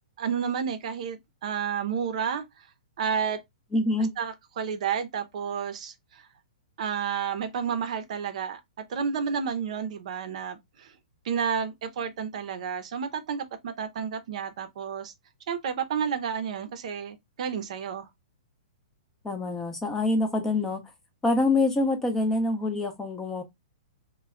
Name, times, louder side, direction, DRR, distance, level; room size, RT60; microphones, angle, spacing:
voice 1, 0.2-2.4 3.0-3.4 4.2-6.3 6.8-10.9 11.2-15.1 15.5-18.1, right 7 dB, 60° right, 0.6 m, -31 dB
voice 2, 3.7-4.1 19.2-20.8 21.2-23.4, left 2 dB, 10° left, 0.5 m, -25 dB
2.1 x 2.1 x 3.5 m
hypercardioid pair, 145°, 4 cm